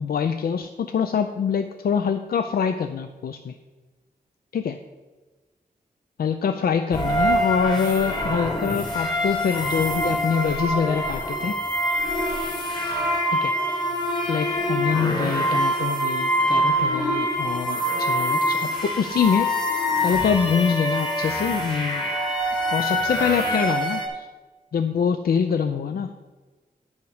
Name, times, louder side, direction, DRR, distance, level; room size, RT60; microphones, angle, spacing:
voice 1, 0.0-3.5 4.5-4.8 6.2-11.6 13.4-13.5 14.3-19.5 20.0-22.1 22.7-24.3 24.7-26.1, left 6 dB, 90° left, 7 dB, 0.5 m, -25 dB
sound 1, 6.9-24.1, equal, 30° left, 1.6 m, -25 dB
9.9 x 6.3 x 4.8 m, 1.3 s
wide cardioid pair, 145°, 15 cm